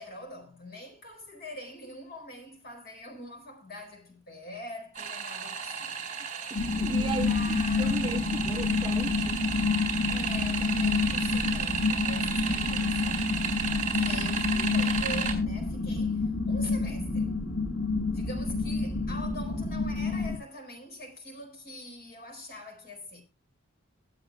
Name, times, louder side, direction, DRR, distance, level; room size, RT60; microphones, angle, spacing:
voice 1, 0.0-5.9 6.9-8.0 10.1-13.3 14.0-17.4 18.1-23.2, left 1 dB, 45° left, 4.3 m, -44 dB
sound 1, 5.0-15.3, right 7 dB, 40° right, 4.0 m, -33 dB
sound 2, 6.5-20.4, left 4 dB, 70° left, 1.5 m, -28 dB
voice 2, 6.5-7.3 7.8-9.4, right 3 dB, 20° right, 0.5 m, -36 dB
23.0 x 7.8 x 2.3 m
head